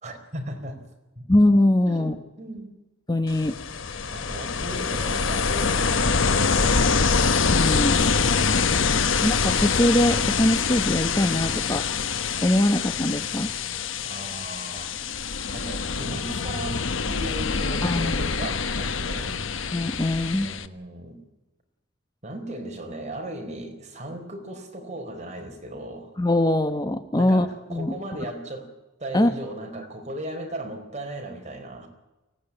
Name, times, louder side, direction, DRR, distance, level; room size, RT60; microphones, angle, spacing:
voice 1, 0.0-0.8 1.2-1.3 1.8-2.7 4.1-7.3 14.0-15.0 15.5-19.4 20.3-21.2 22.2-26.1 27.1-31.9, right 1 dB, 35° right, 4 dB, 4.5 m, -37 dB
voice 2, 1.3-2.1 3.1-3.5 7.5-8.0 9.2-11.9 12.4-13.5 17.8-18.2 19.7-20.5 26.2-27.9 29.1-29.3, left 1 dB, 20° left, 8 dB, 1.0 m, -22 dB
Ocean, 3.3-20.7, left 5 dB, 80° left, 1.1 m, -25 dB
24.0 x 17.5 x 10.0 m, 1.0 s
head